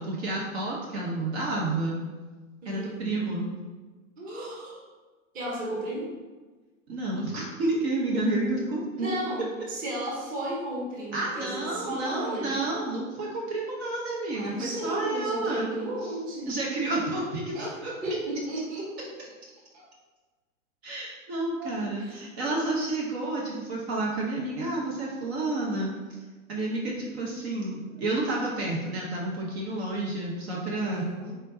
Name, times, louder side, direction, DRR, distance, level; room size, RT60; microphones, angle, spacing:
voice 1, 0.0-2.0 2.6-3.5 6.9-9.2 11.1-15.7 16.0-16.1 16.5-17.9 20.8-25.9 26.5-31.0, right 2 dB, 50° right, -3 dB, 1.0 m, -30 dB
voice 2, 2.6-3.0 4.2-4.8 5.3-6.1 9.0-12.7 14.3-16.6 17.5-17.7 18.0-19.1 19.7-19.8 21.6-22.5 30.7-31.3, right 1 dB, 20° right, -4 dB, 1.1 m, -34 dB
3.9 x 3.6 x 2.7 m, 1.3 s
figure-of-eight pair, 110°, 41 cm